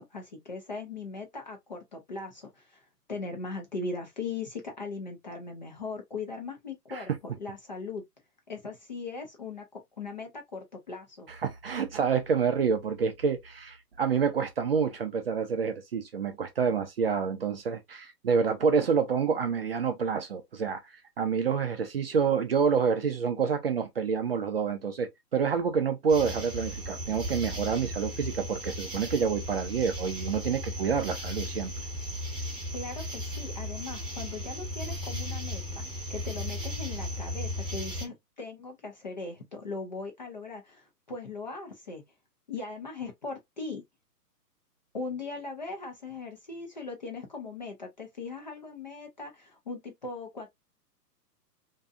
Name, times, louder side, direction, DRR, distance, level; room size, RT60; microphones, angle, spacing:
voice 1, 0.0-8.0 8.5-11.3 32.7-42.0 42.5-43.8 44.9-50.5, left 3 dB, 30° left, 0.4 m, -39 dB
voice 2, 11.4-20.8 21.2-31.7, right 6 dB, 40° right, 0.4 m, -28 dB
sound 1, 26.1-38.0, left 1 dB, ahead, 0.9 m, -36 dB
2.6 x 2.2 x 2.3 m
hypercardioid pair, 130°, 48 cm